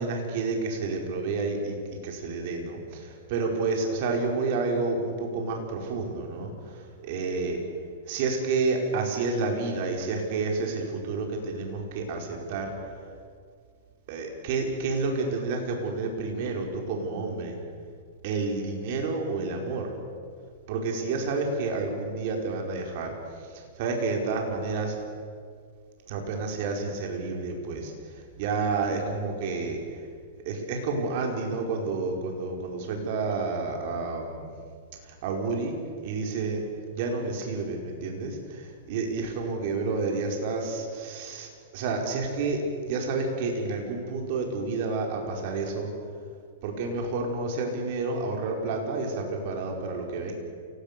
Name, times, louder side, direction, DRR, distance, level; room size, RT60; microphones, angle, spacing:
voice 1, 0.0-7.6 8.1-12.7 14.1-17.6 18.2-19.9 20.7-24.9 26.1-30.1 30.4-34.5 35.0-35.7 36.0-36.6 36.9-45.9 46.6-50.3, right 3 dB, 55° right, 2 dB, 4.9 m, -30 dB
29.0 x 18.0 x 6.9 m, 2.1 s
hypercardioid pair, 140°, 0 cm